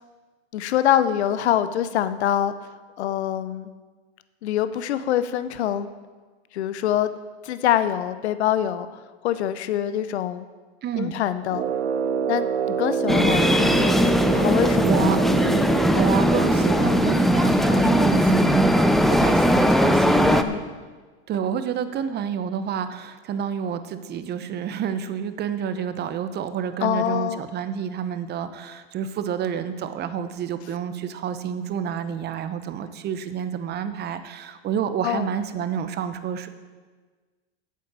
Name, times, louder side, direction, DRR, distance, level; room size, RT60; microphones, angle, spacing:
voice 1, 0.5-2.5 3.0-3.7 4.4-5.9 6.5-7.1 7.4-8.9 9.2-10.5 11.0-11.6 12.3-14.0 14.3-15.2 20.2-20.6 26.8-27.4 35.0-35.3, left 11 dB, 75° left, 13 dB, 0.7 m, -24 dB
voice 2, 10.8-11.2 14.5-15.6 15.9-20.4 21.3-36.5, right 8 dB, 30° right, 11 dB, 0.9 m, -29 dB
Brass instrument, 11.5-17.1, right 5 dB, 90° right, 0.8 m, -26 dB
sound 1, 13.1-20.4, equal, ahead, 0.4 m, -19 dB
8.7 x 8.4 x 7.3 m, 1.4 s
hypercardioid pair, 110°, 33 cm